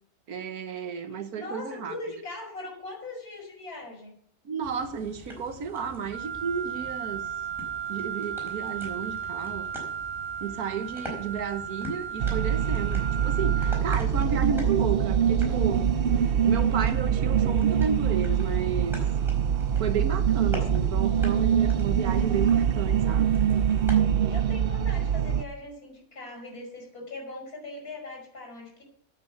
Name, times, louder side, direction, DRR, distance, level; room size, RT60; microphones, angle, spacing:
voice 1, 0.3-1.9 4.5-7.3 7.9-9.7 10.4-15.9 16.2-19.0 19.8-23.4, right 6 dB, 80° right, 1.6 m, -32 dB
voice 2, 1.1-4.1 24.3-28.8, left 2 dB, 85° left, 6.0 m, -40 dB
sound 1, 4.6-24.0, equal, ahead, 4.7 m, -44 dB
Wind instrument woodwind instrument, 6.1-13.9, right 8 dB, 30° right, 1.3 m, -35 dB
sound 2, 12.2-25.4, right 8 dB, 60° right, 0.6 m, -24 dB
9.8 x 8.5 x 7.9 m
omnidirectional pair, 1.5 m